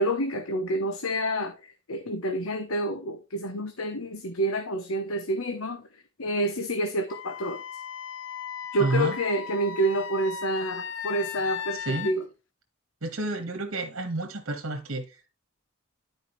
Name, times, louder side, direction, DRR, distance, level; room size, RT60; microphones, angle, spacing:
voice 1, 0.0-5.9 6.2-7.6 8.7-12.2, right 1 dB, 80° left, 1.1 m, -28 dB
Wind instrument woodwind instrument, 7.1-12.1, left 7 dB, 60° left, 0.7 m, -37 dB
voice 2, 8.8-9.2 11.7-12.1 13.0-15.3, right 2 dB, 70° right, 1.6 m, -30 dB
12.0 x 5.0 x 3.2 m
head